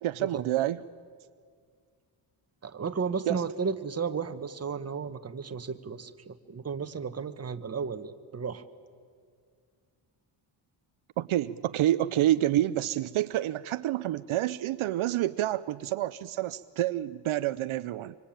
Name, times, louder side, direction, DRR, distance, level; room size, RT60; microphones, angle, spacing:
voice 1, 0.0-0.8 3.3-3.4 11.2-18.2, right 13 dB, 70° right, 13 dB, 0.7 m, -28 dB
voice 2, 2.6-8.6, right 5 dB, 30° right, 9 dB, 1.2 m, -34 dB
25.5 x 25.0 x 8.9 m, 2.1 s
cardioid pair, 130°, 49 cm